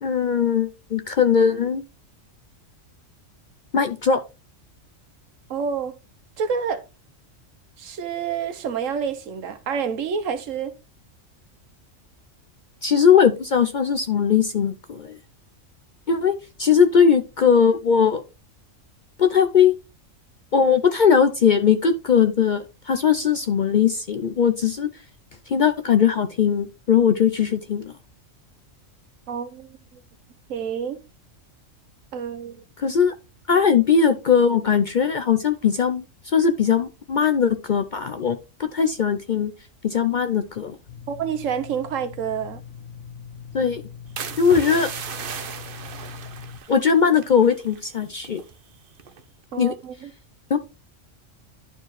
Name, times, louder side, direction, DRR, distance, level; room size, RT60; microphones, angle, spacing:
voice 1, 0.0-1.8 3.7-4.2 12.8-15.1 16.1-16.3 16.6-18.2 19.2-19.7 20.5-24.9 25.5-27.9 32.8-33.1 33.5-36.0 36.3-38.4 38.7-39.5 39.8-40.8 43.5-43.8 44.4-44.9 46.7-48.4 49.6-49.7 50.5-50.6, left 7 dB, 50° left, 0.6 m, -19 dB
voice 2, 5.5-6.0 6.4-6.8 7.8-10.7 29.3-30.0 30.5-31.0 32.1-32.6 41.1-42.6 49.5-50.1, right 7 dB, 80° right, 1.3 m, -28 dB
sound 1, 40.9-46.6, left 7 dB, 85° left, 1.5 m, -41 dB
sound 2, 44.2-47.9 48.2-48.5 49.0-49.3, right 7 dB, 50° right, 0.8 m, -36 dB
11.5 x 4.5 x 3.1 m
omnidirectional pair, 1.3 m